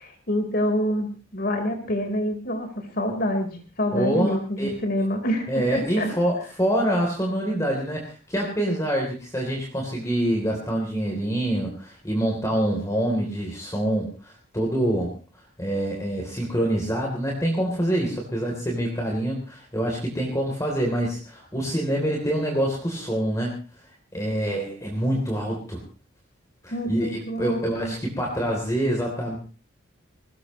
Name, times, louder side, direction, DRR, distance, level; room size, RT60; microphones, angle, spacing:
voice 1, 0.0-2.7 3.0-3.5 3.8-6.1 26.7-27.9, equal, 45° left, 5 dB, 4.2 m, -26 dB
voice 2, 3.9-4.7 5.5-15.2 15.6-23.5 24.1-25.8 26.6-29.4, right 1 dB, 15° left, -1 dB, 3.4 m, -26 dB
22.0 x 19.0 x 3.2 m, 0.36 s
head